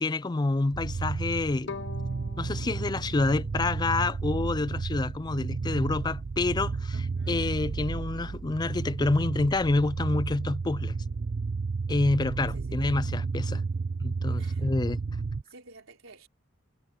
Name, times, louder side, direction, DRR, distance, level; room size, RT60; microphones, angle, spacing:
voice 1, 0.0-1.8 2.4-6.9 7.3-10.9 11.9-13.6 14.0-15.0, left 2 dB, 20° left, 0.4 m, -28 dB
sound 1, 0.7-15.4, right 4 dB, 55° right, 0.5 m, -32 dB
Bowed string instrument, 1.7-4.7, left 4 dB, 60° left, 1.2 m, -45 dB
voice 2, 6.9-7.4 12.5-12.8 14.4-14.7 15.4-16.3, right 3 dB, 75° right, 4.1 m, -52 dB
head